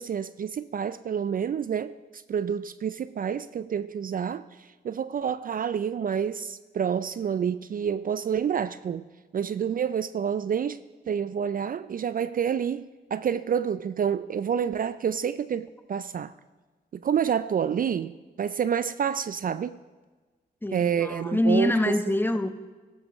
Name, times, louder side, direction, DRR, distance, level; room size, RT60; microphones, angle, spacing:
voice 1, 0.0-9.0 9.3-10.8 11.1-16.3 16.9-19.8 20.7-21.7, right 8 dB, 50° right, 0.4 m, -28 dB
voice 2, 20.6-22.5, left 1 dB, 10° left, 0.9 m, -25 dB
15.0 x 12.0 x 3.1 m
supercardioid pair, 50°, 19 cm